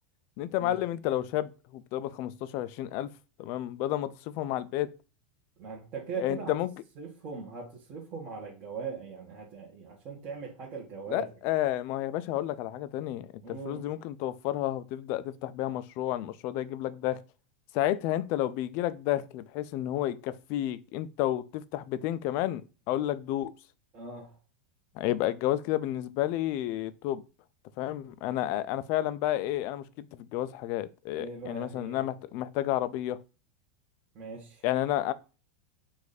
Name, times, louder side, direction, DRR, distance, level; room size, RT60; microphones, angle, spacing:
voice 1, 0.4-3.1 3.4-4.9 6.2-6.7 11.1-17.2 17.7-23.5 25.0-27.2 27.8-33.2 34.6-35.1, left 13 dB, 40° left, 0.4 m, -31 dB
voice 2, 5.6-6.5 7.0-11.3 13.4-13.8 23.9-24.4 31.1-32.1 34.1-34.6, right 4 dB, 30° right, 1.3 m, -40 dB
4.9 x 2.6 x 4.0 m
supercardioid pair, 155°, 6 cm